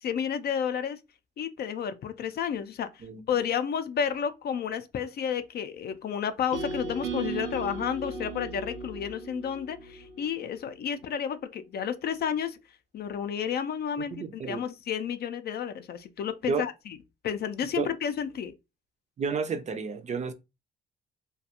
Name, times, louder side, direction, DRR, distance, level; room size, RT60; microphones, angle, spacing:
voice 1, 0.0-1.0 1.4-12.6 12.9-17.0 17.2-18.5, left 8 dB, 55° left, 0.4 m, -31 dB
sound 1, 6.5-10.7, right 3 dB, 85° right, 0.7 m, -37 dB
voice 2, 14.1-14.6 16.5-16.6 17.8-17.9 19.2-20.3, right 5 dB, 35° right, 0.4 m, -31 dB
2.4 x 2.2 x 2.7 m
cardioid pair, 90°, 20 cm